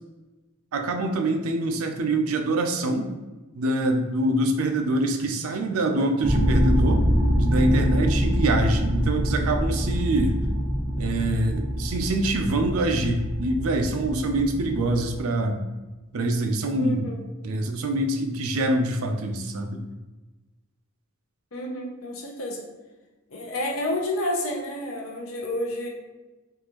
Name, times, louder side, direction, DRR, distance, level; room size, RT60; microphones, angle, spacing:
voice 1, 0.7-3.1 3.6-7.0 7.4-10.4 11.0-15.6 16.1-17.1 17.4-19.8, right 1 dB, 75° right, 5 dB, 0.5 m, -25 dB
sound 1, 6.2-15.2, equal, 15° right, 0.7 m, -25 dB
voice 2, 16.8-17.2 21.5-22.6 23.3-25.9, left 1 dB, 70° left, -1 dB, 0.7 m, -30 dB
3.7 x 2.4 x 3.0 m, 1.1 s
head